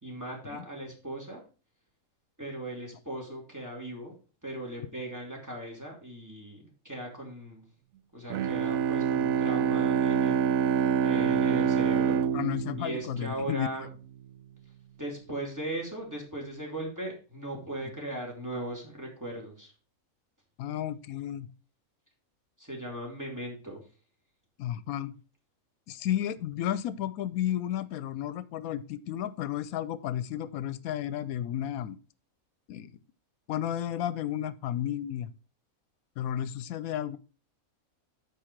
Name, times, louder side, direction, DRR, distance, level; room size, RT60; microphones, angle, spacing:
voice 1, 0.0-1.5 2.4-4.1 4.4-7.7 8.1-10.4 10.7-12.2 12.8-13.9 15.0-19.7 22.6-23.9, right 1 dB, 10° right, -2 dB, 2.5 m, -38 dB
Bowed string instrument, 8.3-13.8, right 7 dB, 75° right, 1.0 m, -26 dB
voice 2, 12.3-13.7 20.6-21.5 24.6-25.2 25.9-32.0 32.7-32.9 33.5-35.3 36.2-37.2, left 11 dB, 85° left, 16 dB, 1.1 m, -32 dB
8.6 x 5.4 x 4.5 m, 0.35 s
omnidirectional pair, 1.5 m